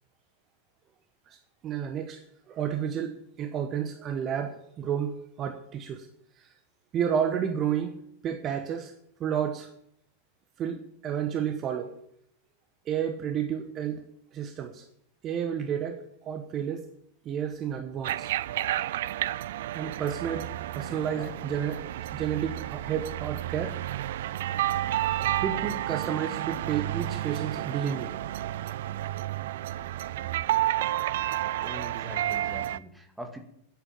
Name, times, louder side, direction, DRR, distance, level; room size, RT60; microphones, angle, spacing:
voice 1, 1.6-6.1 6.4-6.5 6.9-8.9 9.2-9.7 10.6-11.9 12.9-14.0 14.3-14.8 15.2-16.9 17.2-18.3 19.7-21.8 22.1-23.8 25.4-28.1, right 8 dB, 30° right, 8 dB, 1.1 m, -31 dB
sound 1, 18.0-32.8, right 13 dB, 55° right, 0.5 m, -31 dB
voice 2, 20.9-21.3 22.0-22.1 31.6-33.4, equal, 5° right, 4 dB, 2.2 m, -43 dB
10.0 x 9.9 x 8.8 m, 0.73 s
figure-of-eight pair, 90°, 0 cm